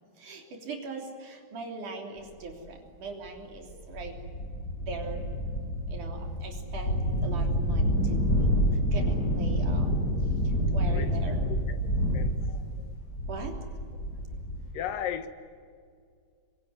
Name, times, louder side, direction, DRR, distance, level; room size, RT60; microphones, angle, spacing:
voice 1, 0.2-4.2 4.8-5.3 5.9-11.5 13.3-13.7, right 3 dB, 65° right, 4.8 m, -41 dB
sound 1, 2.5-2.6 3.3-3.4 3.7-14.7, equal, 25° left, 8.2 m, -28 dB
voice 2, 10.9-11.8 12.1-12.6 14.7-15.3, left 9 dB, 80° left, 3.1 m, -36 dB
26.5 x 22.5 x 9.7 m
omnidirectional pair, 3.9 m